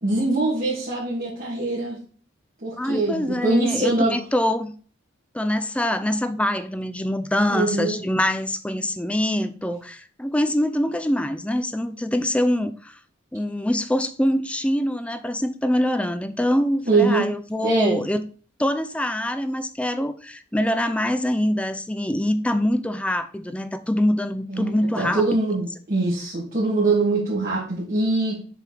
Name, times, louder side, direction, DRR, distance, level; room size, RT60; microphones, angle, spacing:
voice 1, 0.0-2.0 2.6-4.2 7.5-8.0 16.9-17.2 17.6-18.0 24.5-28.4, right 2 dB, 45° right, 2.1 m, -23 dB
voice 2, 2.8-4.7 5.3-13.0 13.3-18.2 18.6-25.3, left 1 dB, 5° left, 0.5 m, -24 dB
6.9 x 3.5 x 4.6 m
head